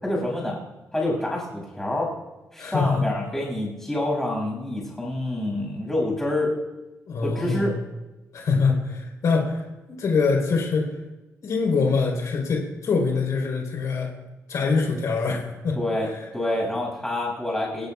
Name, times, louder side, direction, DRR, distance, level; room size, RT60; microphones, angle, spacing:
voice 1, 0.0-0.6 0.9-2.1 2.5-6.5 7.2-7.7 15.8-16.1 16.3-17.9, left 1 dB, 5° left, -2 dB, 6.9 m, -27 dB
voice 2, 2.6-3.0 7.1-7.7 8.3-11.0 11.4-14.1 14.5-16.2, left 4 dB, 65° left, -1 dB, 4.1 m, -24 dB
28.0 x 16.5 x 2.4 m, 1.1 s
wide cardioid pair, 160°, 6 cm